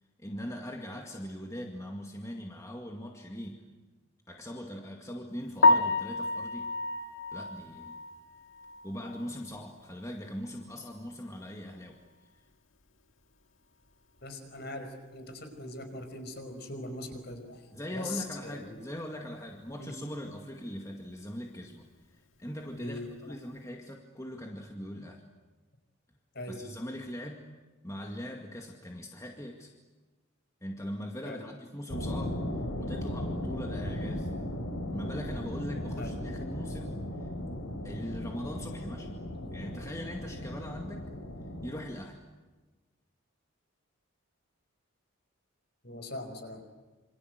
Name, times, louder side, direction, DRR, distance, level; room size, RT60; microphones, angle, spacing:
voice 1, 0.2-3.6 4.3-6.7 7.3-8.0 8.8-12.0 17.7-21.9 22.4-25.2 26.5-27.4 27.8-29.7 30.6-32.4 32.8-34.3 34.9-37.3 37.8-39.1 39.5-41.1 41.6-42.2, equal, 15° left, 2 dB, 2.1 m, -41 dB
Piano, 5.6-9.6 9.9-10.1 10.6-10.7 11.0-11.1 14.2-14.3 22.8-23.0, left 3 dB, 65° left, 2.0 m, -29 dB
voice 2, 14.2-17.6 17.9-18.8 19.8-19.9 22.8-23.3 26.3-26.6 31.2-31.5 36.0-36.2 45.8-46.6, left 2 dB, 50° left, 6 dB, 5.3 m, -41 dB
sound 1, 31.9-41.8, left 1 dB, 85° left, 4.7 m, -36 dB
27.5 x 27.0 x 8.0 m, 1.2 s
head